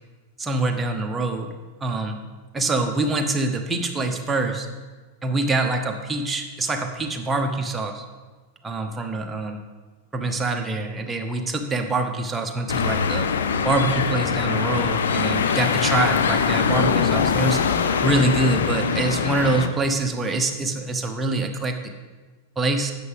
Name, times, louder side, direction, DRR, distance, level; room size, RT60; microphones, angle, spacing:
voice 1, 0.4-1.5 1.8-2.2 2.5-4.7 5.2-8.0 8.6-9.6 10.1-13.3 13.6-17.7 18.0-21.8 22.6-22.9, right 2 dB, 15° right, 4 dB, 1.0 m, -25 dB
sound 1, 12.7-19.7, left 6 dB, 65° left, 0.5 m, -22 dB
11.0 x 7.7 x 3.5 m, 1.3 s
figure-of-eight pair, 90°, 0 cm